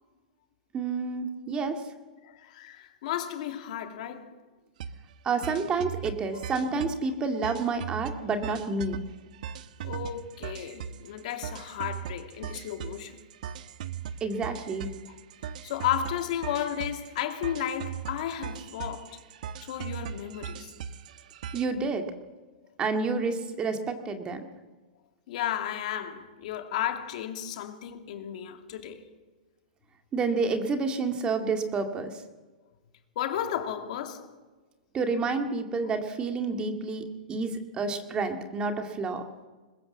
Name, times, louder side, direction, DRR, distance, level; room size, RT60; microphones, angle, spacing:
voice 1, 0.7-1.8 5.2-9.0 14.2-14.9 21.5-22.1 22.8-24.4 30.1-32.2 34.9-39.2, right 4 dB, 20° right, 2.1 m, -29 dB
voice 2, 2.2-4.3 9.8-13.2 15.1-15.2 15.6-19.2 19.6-20.7 25.3-29.0 33.2-34.3, left 10 dB, 55° left, 2.7 m, -33 dB
sound 1, 4.8-5.0 5.3-7.0 7.3-21.7, right 8 dB, 65° right, 1.3 m, -39 dB
21.5 x 21.0 x 7.4 m
hypercardioid pair, 140°, 5 cm